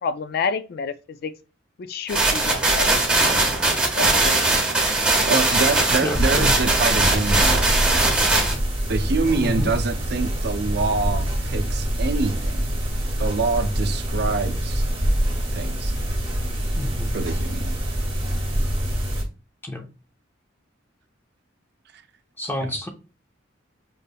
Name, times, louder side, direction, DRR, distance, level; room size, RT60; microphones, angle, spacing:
voice 1, 0.0-0.9 1.2-1.3 1.8-2.9 4.0-5.1, left 5 dB, 55° left, 0.3 m, -29 dB
sound 1, 2.1-8.5, right 2 dB, 5° right, 1.1 m, -20 dB
voice 2, 5.3-8.1 8.9-12.6 13.2-14.9 15.5-15.9 17.1-17.8 22.6-22.7, right 3 dB, 55° right, 0.5 m, -25 dB
voice 3, 6.0-6.5 7.0-7.1 9.4-9.7 16.8-17.1 19.6-19.9 22.4-22.9, left 1 dB, 10° left, 0.6 m, -28 dB
sound 2, 6.1-19.2, equal, 25° right, 1.4 m, -25 dB
5.3 x 3.2 x 2.2 m
head